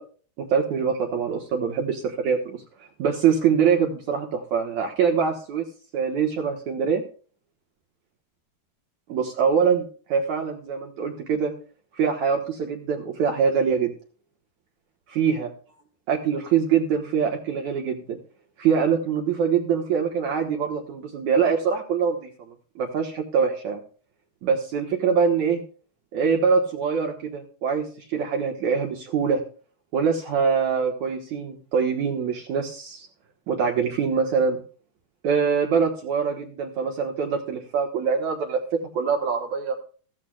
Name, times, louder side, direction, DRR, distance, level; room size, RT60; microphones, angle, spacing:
voice 1, 0.4-2.6 3.0-5.7 5.9-7.0 9.1-11.5 12.0-13.9 15.1-15.5 16.1-18.2 18.6-22.3 22.8-23.8 24.4-25.6 26.1-29.4 29.9-33.1 33.5-34.6 35.2-39.7, right 6 dB, 65° right, 2 dB, 2.2 m, -24 dB
15.0 x 14.5 x 2.3 m, 0.40 s
omnidirectional pair, 4.4 m